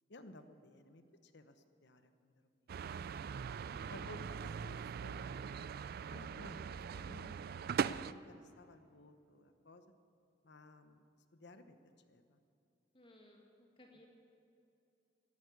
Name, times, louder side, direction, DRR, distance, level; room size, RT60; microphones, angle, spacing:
voice 1, 0.1-2.5 3.9-9.8 10.4-11.0 11.3-11.8 12.1-12.4, left 1 dB, 65° left, 9 dB, 1.0 m, -57 dB
sound 1, 2.7-8.1, right 6 dB, 55° right, 0.3 m, -41 dB
voice 2, 3.7-4.3 12.9-14.1, left 1 dB, 30° left, 0 dB, 1.8 m, -61 dB
13.0 x 11.0 x 9.5 m, 2.6 s
head